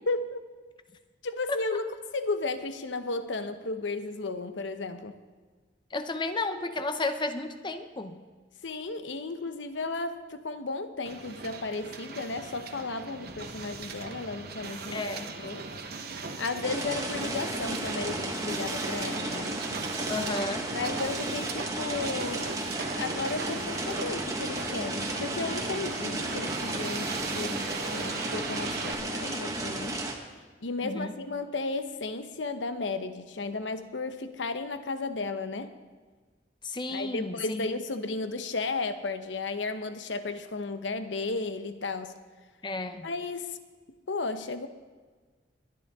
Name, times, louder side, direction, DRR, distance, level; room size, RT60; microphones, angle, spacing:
voice 1, 0.1-0.4 1.2-1.9 2.1-5.2 8.6-15.7 16.4-19.6 20.7-22.6 23.0-27.6 27.9-30.0 30.6-35.7 36.9-42.1 43.0-43.6 44.1-44.7, left 3 dB, 85° left, 10 dB, 0.9 m, -34 dB
voice 2, 5.9-8.2 14.9-15.4 20.1-20.7 30.8-31.1 36.6-37.7 42.6-43.1, left 2 dB, 25° left, 9 dB, 0.6 m, -32 dB
Hiss, 11.0-28.9, right 3 dB, 55° right, 1.1 m, -39 dB
sound 1, 16.6-30.1, right 2 dB, 20° right, 1.4 m, -34 dB
21.5 x 10.0 x 3.6 m, 1.4 s
head